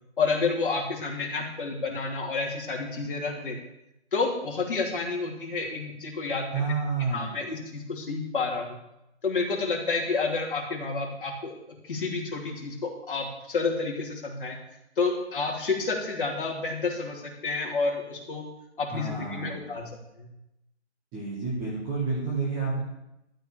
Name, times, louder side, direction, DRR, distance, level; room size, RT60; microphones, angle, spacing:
voice 1, 0.2-3.6 4.1-6.7 7.1-8.8 9.2-14.6 15.0-18.5 18.8-19.9 20.2-20.3, left 4 dB, 50° left, 0 dB, 3.0 m, -30 dB
voice 2, 6.5-7.3 18.9-19.5 21.1-22.8, right 4 dB, 5° right, -6 dB, 0.9 m, -29 dB
13.5 x 5.2 x 8.9 m, 0.85 s
hypercardioid pair, 170°, 35 cm